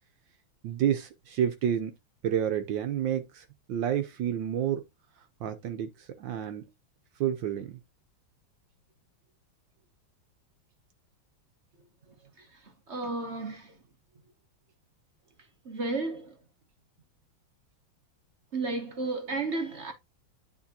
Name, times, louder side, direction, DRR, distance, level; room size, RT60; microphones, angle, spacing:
voice 1, 0.6-1.9 2.2-4.8 5.4-6.7 7.2-7.8, right 9 dB, 70° right, 1.4 m, -30 dB
voice 2, 12.9-13.7 15.7-16.3 18.5-19.9, right 3 dB, 45° right, 0.9 m, -32 dB
9.8 x 4.5 x 2.8 m
omnidirectional pair, 2.2 m